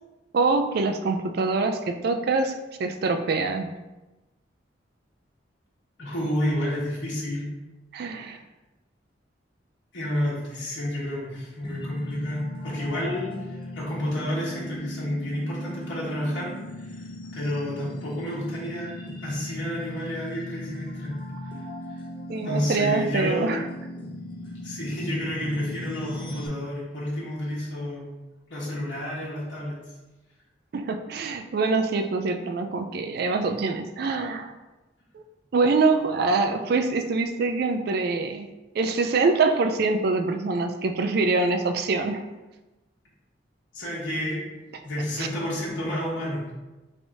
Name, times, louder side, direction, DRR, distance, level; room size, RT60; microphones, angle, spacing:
voice 1, 0.3-3.7 7.9-8.4 22.3-23.7 30.7-34.5 35.1-35.2 35.5-38.5 38.7-42.2 45.2-45.3, right 3 dB, 60° right, 7 dB, 0.4 m, -24 dB
voice 2, 6.0-7.5 8.1-8.3 9.9-16.5 16.8-17.0 17.3-21.2 22.4-23.5 24.6-28.1 28.5-29.8 43.7-44.4 44.8-46.5, left 1 dB, 90° left, -6 dB, 1.2 m, -30 dB
sound 1, 11.6-26.5, left 1 dB, 30° left, 0.5 m, -38 dB
3.3 x 2.7 x 4.6 m, 1.1 s
head